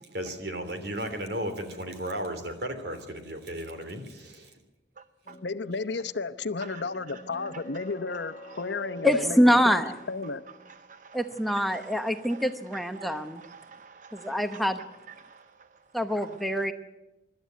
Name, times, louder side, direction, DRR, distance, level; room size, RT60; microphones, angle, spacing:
voice 1, 0.1-4.5, right 1 dB, 65° right, 7 dB, 3.2 m, -35 dB
sound 1, 5.3-10.7, left 1 dB, 40° left, 1.7 m, -46 dB
voice 2, 5.4-9.8 10.1-10.4, left 4 dB, 80° left, 12 dB, 0.9 m, -33 dB
voice 3, 7.5-7.9 8.5-8.9 10.5-15.4 16.2-16.3, right 6 dB, 45° right, 11 dB, 0.7 m, -48 dB
voice 4, 9.0-9.9 11.1-13.4 14.1-14.8 15.9-16.7, equal, ahead, 8 dB, 0.9 m, -25 dB
25.0 x 12.5 x 9.3 m, 1.0 s
head